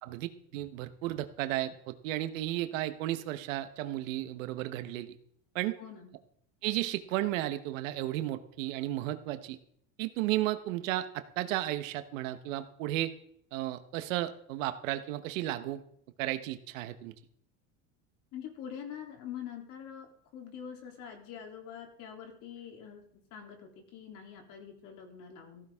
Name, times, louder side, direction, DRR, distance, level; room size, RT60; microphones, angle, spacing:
voice 1, 0.0-5.1 5.5-5.8 6.6-9.6 10.0-13.1 13.5-15.8 16.2-17.1, right 15 dB, 85° right, 10 dB, 1.3 m, -34 dB
voice 2, 5.8-6.1 18.3-20.1 20.3-23.0 23.3-25.7, left 8 dB, 50° left, 2 dB, 3.3 m, -45 dB
15.0 x 13.5 x 3.6 m, 0.67 s
supercardioid pair, 135°, 38 cm